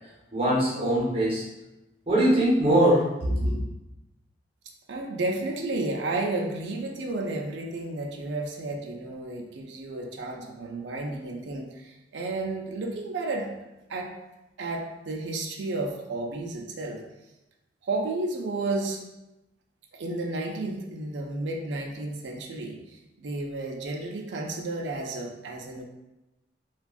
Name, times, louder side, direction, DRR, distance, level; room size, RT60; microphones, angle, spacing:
voice 1, 0.3-1.4 2.1-3.6, right 1 dB, 30° right, -8 dB, 0.8 m, -22 dB
voice 2, 4.9-13.5 13.9-14.1 14.6-17.0 17.8-19.0 19.9-22.8 23.2-25.8, right 2 dB, 90° right, 1 dB, 0.4 m, -32 dB
3.4 x 2.3 x 2.3 m, 0.97 s
head